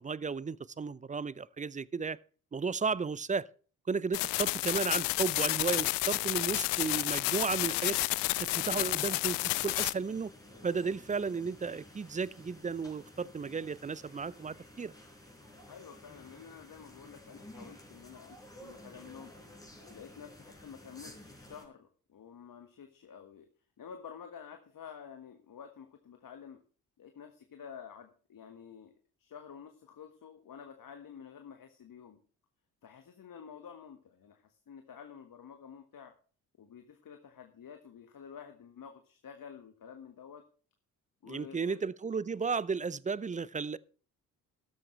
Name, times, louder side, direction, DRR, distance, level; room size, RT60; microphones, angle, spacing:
voice 1, 0.0-2.2 2.5-3.5 3.9-8.0 8.4-10.3 10.6-14.9 41.3-43.8, right 5 dB, 20° right, 0.5 m, -34 dB
sound 1, 4.1-9.9, left 23 dB, 70° left, 0.6 m, -31 dB
sound 2, 8.1-21.6, left 1 dB, 10° left, 4.8 m, -53 dB
voice 2, 15.7-19.3 19.9-23.5 23.8-26.6 27.0-28.9 29.2-32.2 32.8-36.1 36.6-40.4 41.2-41.8, left 7 dB, 45° left, 1.6 m, -50 dB
13.0 x 11.5 x 3.2 m
hypercardioid pair, 40°, 45 cm